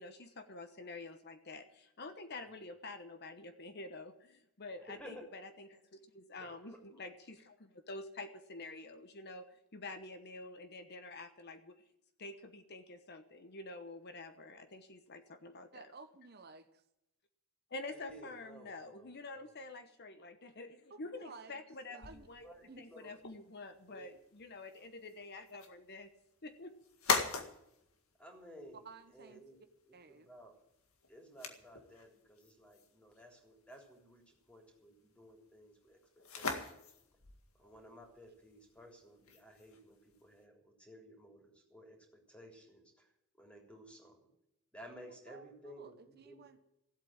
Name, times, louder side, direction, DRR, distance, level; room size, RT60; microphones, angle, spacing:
voice 1, 0.0-11.8 12.2-15.9 17.7-22.5 22.8-26.1 26.4-26.7, left 2 dB, 50° left, 9 dB, 1.0 m, -48 dB
voice 2, 4.8-5.2 6.4-7.0 17.9-19.1 19.4-19.5 22.4-23.2 23.8-24.1 28.2-28.8 29.1-29.6 29.9-30.5 31.1-36.0 36.3-36.7 37.5-43.1 43.3-44.3 44.7-46.5, equal, 5° left, 1 dB, 3.5 m, -55 dB
voice 3, 15.7-16.8 20.9-21.5 21.9-22.3 22.7-22.8 28.8-29.4 29.9-30.3 45.3-46.6, right 4 dB, 45° right, 8 dB, 1.0 m, -54 dB
sound 1, 22.0-40.4, left 4 dB, 70° left, 2.0 m, -43 dB
15.5 x 8.4 x 8.9 m, 0.83 s
head